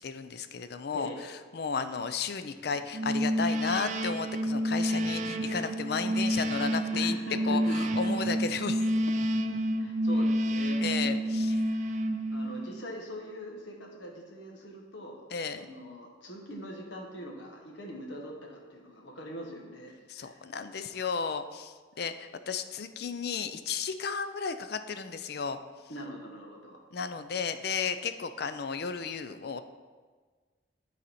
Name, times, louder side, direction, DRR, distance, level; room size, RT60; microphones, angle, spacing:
voice 1, 0.0-7.1 7.4-8.9 10.8-11.6 15.3-15.7 20.1-25.6 26.9-29.6, left 5 dB, 55° left, 10 dB, 0.4 m, -34 dB
sound 1, 2.9-12.8, equal, 40° right, 0.4 m, -29 dB
voice 2, 6.9-7.8 9.8-12.0 12.3-15.3 15.6-20.4 20.9-21.1 25.9-26.8, equal, 75° left, 1 dB, 1.4 m, -43 dB
12.5 x 4.1 x 4.2 m, 1.4 s
head